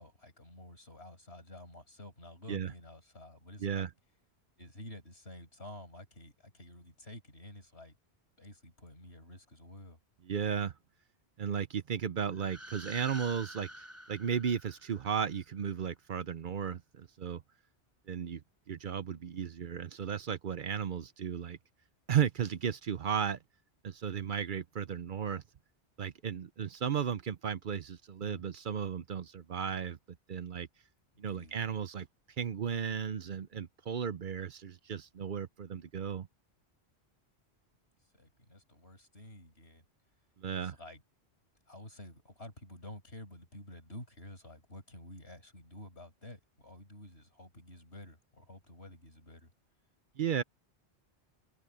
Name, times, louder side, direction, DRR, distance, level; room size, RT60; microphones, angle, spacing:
voice 1, 0.0-3.9 4.6-8.0 8.4-10.0 28.2-28.4 31.1-31.6 38.1-39.8 40.5-41.0 41.7-49.5, left 1 dB, 70° left, 6.7 m, -51 dB
voice 2, 10.3-10.7 11.4-17.4 18.1-18.4 18.7-21.6 22.1-23.4 23.8-25.4 26.0-30.0 30.3-30.7 31.2-32.1 32.4-36.3 40.4-40.7 50.2-50.4, right 8 dB, 55° right, 0.7 m, -34 dB
sound 1, 12.3-15.3, equal, 15° right, 6.5 m, -48 dB
open air
omnidirectional pair, 1.1 m